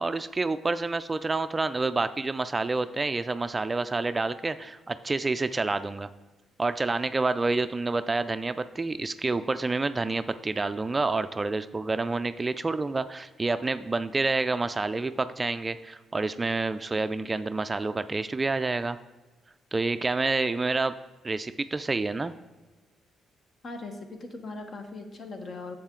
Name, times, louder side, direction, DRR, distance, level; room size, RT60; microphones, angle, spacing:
voice 1, 0.0-6.1 6.6-19.0 19.7-20.9 21.2-22.3, right 3 dB, 25° right, 12 dB, 0.3 m, -28 dB
voice 2, 23.6-25.8, left 3 dB, 50° left, 5 dB, 1.2 m, -39 dB
7.5 x 7.1 x 3.8 m, 1.2 s
cardioid pair, 85°, 0 cm